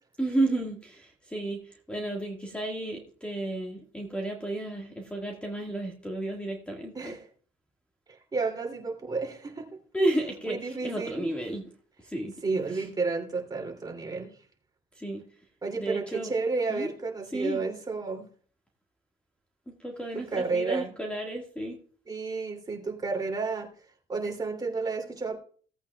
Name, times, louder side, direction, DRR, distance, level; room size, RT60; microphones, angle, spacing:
voice 1, 0.2-7.2 9.9-11.6 12.0-12.3 12.7-12.9 15.0-15.2 15.7-16.3 16.7-16.9 17.3-17.6 19.8-21.8, right 1 dB, 5° left, 1 dB, 1.8 m, -32 dB
voice 2, 6.9-7.3 8.1-9.7 10.5-11.3 12.4-14.3 15.6-18.3 20.3-20.9 22.1-23.7 24.1-25.4, right 4 dB, 25° right, 2 dB, 2.8 m, -31 dB
17.5 x 8.4 x 2.3 m, 0.43 s
cardioid pair, 110°, 17 cm